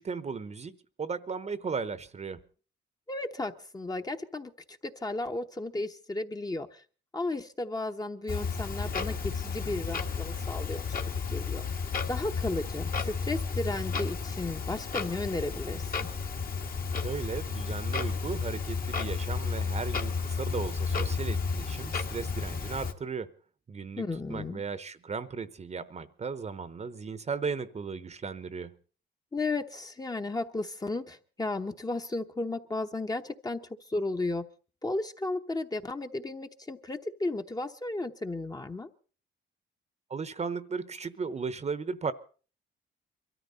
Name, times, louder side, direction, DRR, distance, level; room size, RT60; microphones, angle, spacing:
voice 1, 0.0-2.4 17.0-23.3 23.7-24.0 24.3-28.8 40.1-42.1, right 5 dB, 35° right, 0.9 m, -36 dB
voice 2, 3.1-6.8 7.1-11.0 11.3-11.6 12.1-16.1 24.0-24.6 29.3-34.4 34.8-38.9, left 2 dB, 20° left, 1.0 m, -34 dB
Clock, 8.3-22.9, left 5 dB, 45° left, 1.6 m, -32 dB
23.0 x 13.5 x 4.1 m
cardioid pair, 90°, 20 cm